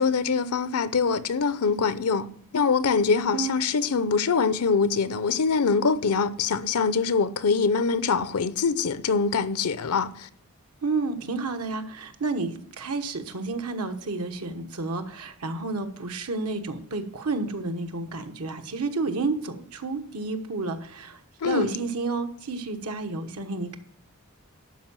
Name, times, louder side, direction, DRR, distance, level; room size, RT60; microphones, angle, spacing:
voice 1, 0.0-2.3 2.5-10.3 21.4-21.7, left 5 dB, 80° left, 0.6 m, -24 dB
voice 2, 10.8-23.8, right 3 dB, 80° right, 1.2 m, -30 dB
11.5 x 4.7 x 7.4 m
head